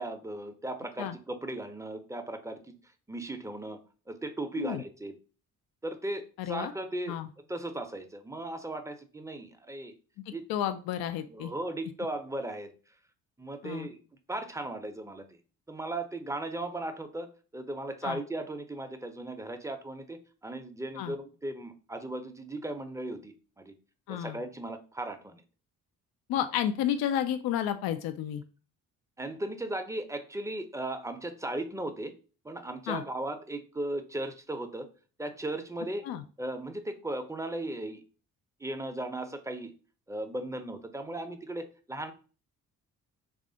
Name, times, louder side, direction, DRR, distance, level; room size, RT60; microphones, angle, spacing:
voice 1, 0.0-2.7 3.1-3.8 4.1-5.1 5.8-7.2 7.5-10.0 10.3-10.4 11.3-12.7 13.4-14.0 14.3-15.4 15.7-23.7 24.1-25.4 29.2-32.1 32.4-34.9 35.2-36.0 36.4-38.0 38.6-39.7 40.1-42.1, right 1 dB, 10° right, 7 dB, 0.6 m, -37 dB
voice 2, 6.4-6.7 7.1-7.3 10.5-11.5 13.6-13.9 18.0-18.2 21.0-21.1 24.1-24.4 26.3-28.4 32.9-33.0 36.0-36.2, left 10 dB, 65° left, 9 dB, 0.5 m, -31 dB
3.2 x 2.5 x 3.8 m, 0.37 s
hypercardioid pair, 45°, 40 cm